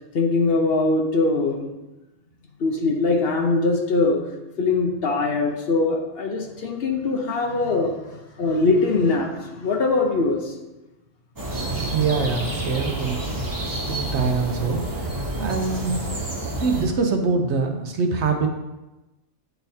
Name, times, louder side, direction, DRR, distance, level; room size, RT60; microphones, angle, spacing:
voice 1, 0.1-1.7 2.6-4.3 4.6-10.5, left 3 dB, 55° left, 2 dB, 0.9 m, -22 dB
sound 1, 11.4-16.9, right 1 dB, 20° right, 0.8 m, -29 dB
voice 2, 11.7-13.2 13.9-14.8 15.4-16.0 16.6-18.5, right 4 dB, 65° right, 3 dB, 1.0 m, -24 dB
9.9 x 4.0 x 2.7 m, 1.0 s
omnidirectional pair, 1.3 m